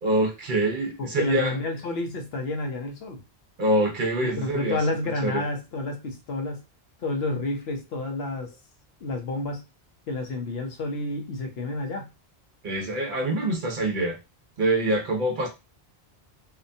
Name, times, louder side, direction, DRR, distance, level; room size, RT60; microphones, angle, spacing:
voice 1, 0.0-1.6 3.6-4.8 5.2-5.4 12.6-14.2 14.6-15.5, right 1 dB, 55° right, 1 dB, 0.8 m, -25 dB
voice 2, 1.0-3.2 4.2-6.6 7.0-8.6 9.0-9.6 10.1-12.1, left 2 dB, 70° left, 3 dB, 0.9 m, -30 dB
2.8 x 2.2 x 2.5 m, 0.25 s
omnidirectional pair, 1.1 m